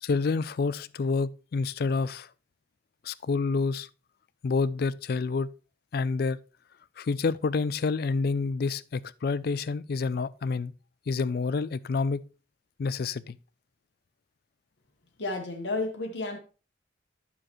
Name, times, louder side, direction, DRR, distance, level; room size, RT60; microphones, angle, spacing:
voice 1, 0.0-2.3 3.0-3.9 4.4-5.5 5.9-6.4 7.0-10.7 11.1-12.2 12.8-13.4, left 4 dB, 50° left, 0.4 m, -28 dB
voice 2, 15.2-16.4, left 2 dB, 70° left, 1.3 m, -31 dB
10.0 x 6.9 x 3.1 m
head